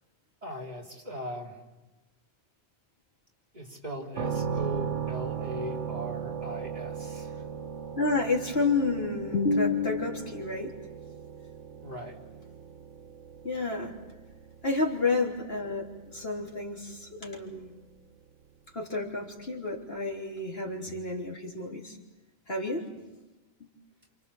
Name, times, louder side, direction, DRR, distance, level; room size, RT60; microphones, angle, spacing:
voice 1, 0.4-1.6 3.5-7.5 11.8-12.2, equal, 35° right, -2 dB, 4.0 m, -39 dB
sound 1, 4.1-17.9, right 7 dB, 85° right, 1.6 m, -38 dB
voice 2, 8.0-10.7 13.4-13.9 14.6-17.7 18.7-22.0 22.5-23.0 23.6-23.7, left 3 dB, 60° left, 0 dB, 3.7 m, -30 dB
28.5 x 28.5 x 7.2 m, 1.1 s
omnidirectional pair, 1.2 m